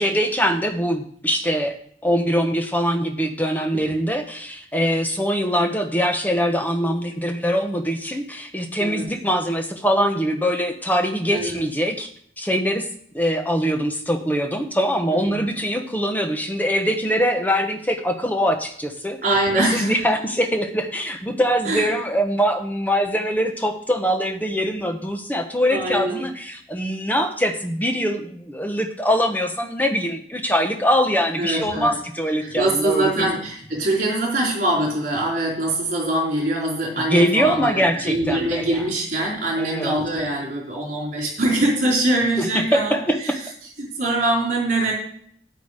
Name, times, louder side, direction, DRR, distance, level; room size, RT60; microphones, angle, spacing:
voice 1, 0.0-1.8 2.0-12.1 12.4-12.8 13.1-19.2 19.5-33.3 37.0-38.9 39.6-40.0 42.4-43.4, equal, 10° left, 5 dB, 1.0 m, -23 dB
voice 2, 8.8-9.1 11.3-11.6 15.1-15.4 19.2-20.1 21.7-21.9 25.7-26.3 31.4-32.0 32.4-43.3 43.8-44.9, right 1 dB, 45° right, -2 dB, 4.1 m, -23 dB
9.1 x 8.6 x 4.9 m, 0.63 s
head